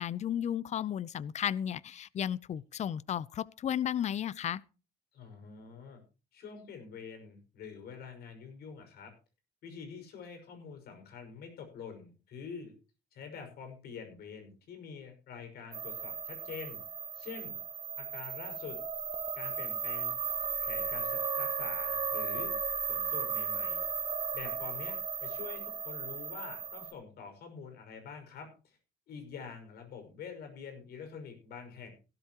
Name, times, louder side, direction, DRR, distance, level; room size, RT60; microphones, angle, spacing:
voice 1, 0.0-4.6, left 10 dB, 40° left, 0.6 m, -34 dB
voice 2, 5.1-6.0 6.3-9.1 9.6-12.7 13.1-16.8 17.1-17.6 18.0-18.8 19.3-20.1 20.6-22.5 22.9-23.9 24.3-28.8 29.1-31.9, left 6 dB, 70° left, 5.7 m, -46 dB
sound 1, 15.7-26.9, right 6 dB, 35° right, 2.0 m, -35 dB
16.0 x 12.5 x 3.0 m
cardioid pair, 110°, 17 cm